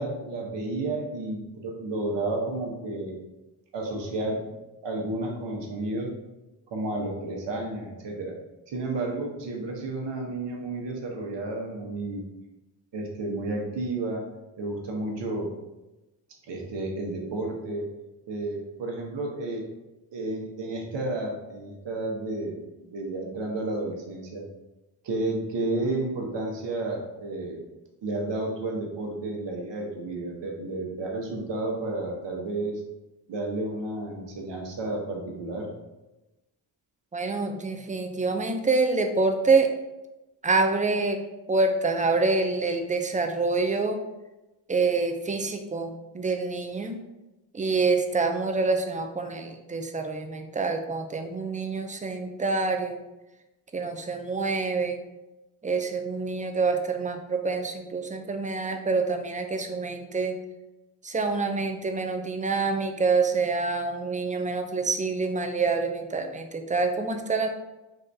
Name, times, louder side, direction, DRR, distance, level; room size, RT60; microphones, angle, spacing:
voice 1, 0.0-3.2 3.7-4.4 4.8-6.1 6.7-8.3 8.7-12.2 12.9-14.2 14.6-15.5 16.5-17.8 18.3-19.6 20.1-24.4 25.0-27.6 28.0-32.8 33.3-35.7, right 2 dB, 60° right, 1 dB, 1.1 m, -31 dB
voice 2, 37.1-39.7 40.4-41.2 41.5-44.0 44.7-47.0 47.5-53.0 53.7-55.0 55.6-60.4 61.0-67.5, right 3 dB, 15° right, 5 dB, 0.5 m, -26 dB
3.9 x 2.5 x 3.4 m, 1.0 s
supercardioid pair, 50°, 50 cm